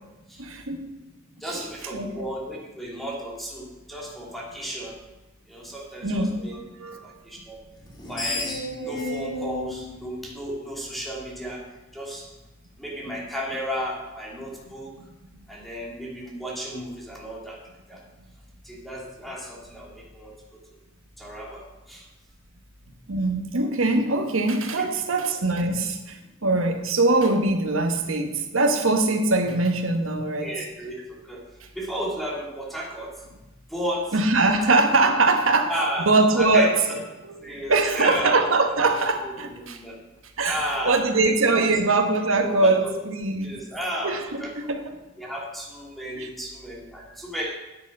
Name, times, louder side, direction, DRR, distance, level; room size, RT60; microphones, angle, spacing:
voice 1, 0.4-1.0 1.5-1.6 1.9-2.3 6.0-7.2 23.1-30.5 34.1-35.7 36.1-36.8 37.2-37.4 37.7-39.8 40.4-43.6 44.0-44.8 46.1-46.3, right 2 dB, 75° right, 5 dB, 1.3 m, -22 dB
voice 2, 1.4-4.9 5.5-6.6 7.0-7.6 8.1-8.6 8.8-11.6 11.9-12.3 12.8-15.0 15.5-18.0 18.6-20.6 21.2-22.1 24.8-24.9 30.4-31.4 31.7-33.2 33.7-34.1 35.6-36.1 36.3-37.0 37.4-38.3 39.2-40.0 40.4-41.7 42.6-43.0 43.4-44.5 45.2-47.5, equal, ahead, -3 dB, 2.8 m, -33 dB
Screech, 7.8-11.1, left 1 dB, 20° left, 2.6 m, -33 dB
10.0 x 9.4 x 5.5 m, 1.1 s
head